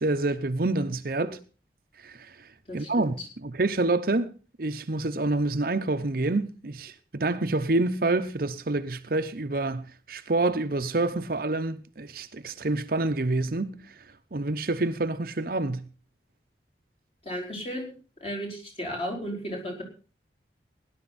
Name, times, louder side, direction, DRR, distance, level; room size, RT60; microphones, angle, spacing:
voice 1, 0.0-1.4 2.0-2.3 2.7-4.3 4.6-13.7 14.3-15.9, right 2 dB, 55° right, 0.8 m, -27 dB
voice 2, 17.2-17.9 18.2-19.8, equal, 35° left, 4.5 m, -34 dB
17.5 x 11.0 x 4.2 m
head